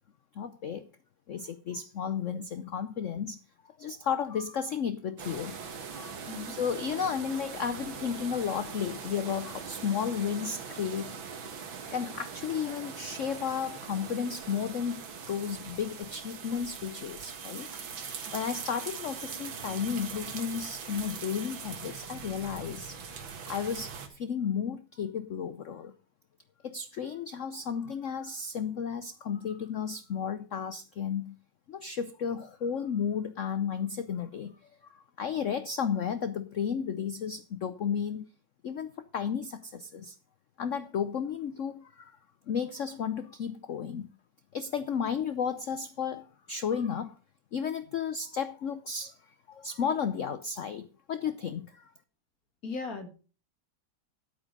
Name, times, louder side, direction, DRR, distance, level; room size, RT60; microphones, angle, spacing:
voice 1, 0.3-0.9 1.3-3.4 3.8-5.5 5.9-6.2 6.5-11.2 11.9-17.7 18.3-23.0 23.5-25.9 26.6-31.4 31.7-34.6 34.8-38.3 38.6-40.2 40.6-42.2 42.5-44.1 44.5-47.1 47.5-51.9, left 7 dB, 80° left, 12 dB, 0.6 m, -33 dB
sound 1, 5.2-24.1, right 6 dB, 70° right, 2.3 m, -41 dB
voice 2, 52.6-53.1, left 4 dB, 45° left, 6 dB, 2.3 m, -37 dB
11.5 x 8.6 x 5.2 m, 0.36 s
omnidirectional pair, 2.2 m